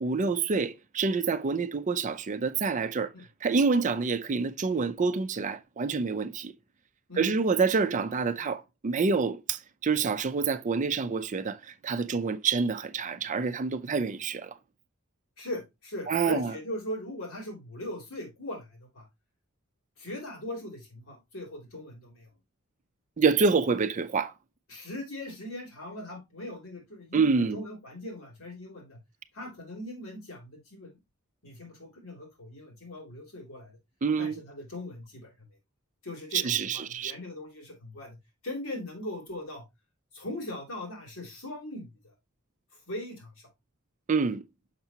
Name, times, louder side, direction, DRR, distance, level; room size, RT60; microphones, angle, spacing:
voice 1, 0.0-3.1 3.4-6.5 7.2-14.6 16.1-16.5 23.2-24.3 27.1-27.6 34.0-34.4 36.3-37.1 44.1-44.4, right 4 dB, 35° right, 0.4 m, -27 dB
voice 2, 7.1-7.4 15.4-19.1 20.0-22.3 24.7-29.0 29.3-30.9 31.4-33.8 34.2-35.5 36.0-38.2 38.4-39.6 40.1-42.1 42.9-43.5, left 1 dB, 70° left, 3.0 m, -40 dB
6.6 x 5.8 x 2.8 m
head